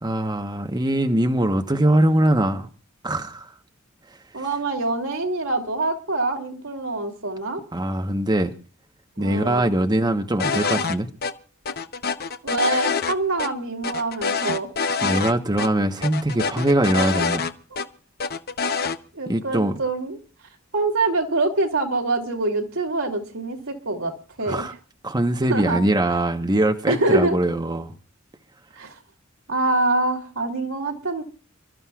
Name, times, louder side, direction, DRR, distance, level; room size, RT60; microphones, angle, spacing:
voice 1, 0.0-2.7 3.0-3.5 7.7-8.5 9.2-11.1 15.0-17.5 19.3-19.7 24.5-24.7 25.0-27.9, right 1 dB, 20° right, 1.0 m, -22 dB
voice 2, 4.3-7.6 9.2-9.7 12.4-14.7 19.1-20.2 20.7-24.6 25.5-25.8 26.9-27.4 28.8-29.0 29.5-31.2, right 2 dB, 80° right, 2.8 m, -25 dB
sound 1, 10.4-11.0 11.2-11.3 11.7-13.1 13.4-13.5 13.8-15.3 15.6-15.7 16.0-17.9 18.2-19.0, left 5 dB, 50° left, 0.9 m, -25 dB
30.0 x 13.0 x 2.4 m
head